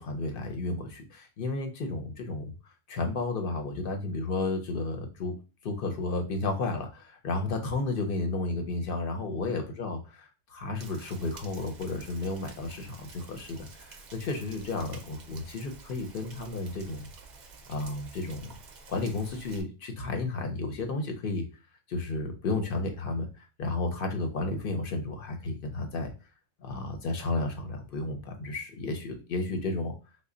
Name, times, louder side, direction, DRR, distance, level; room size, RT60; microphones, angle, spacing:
voice 1, 0.0-2.5 2.9-5.3 5.6-10.0 10.5-17.1 17.7-18.6 18.9-21.5 21.9-26.1 26.6-29.9, left 2 dB, 60° left, 4 dB, 0.7 m, -32 dB
Rain, 10.8-19.6, right 4 dB, 55° right, 0.5 m, -50 dB
3.2 x 2.1 x 3.7 m, 0.32 s
omnidirectional pair, 1.2 m